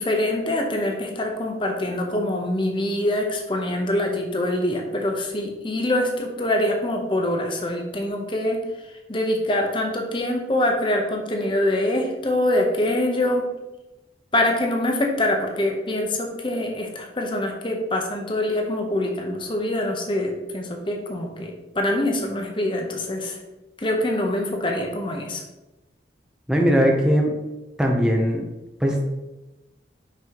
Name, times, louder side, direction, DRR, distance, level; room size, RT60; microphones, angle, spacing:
voice 1, 0.0-8.6 8.9-13.5 14.3-23.4 23.8-25.4, left 1 dB, 25° left, 2 dB, 0.8 m, -24 dB
voice 2, 26.5-27.3 27.8-28.4 28.8-29.1, equal, 5° right, 0 dB, 0.6 m, -19 dB
5.9 x 5.4 x 3.0 m, 1.0 s
head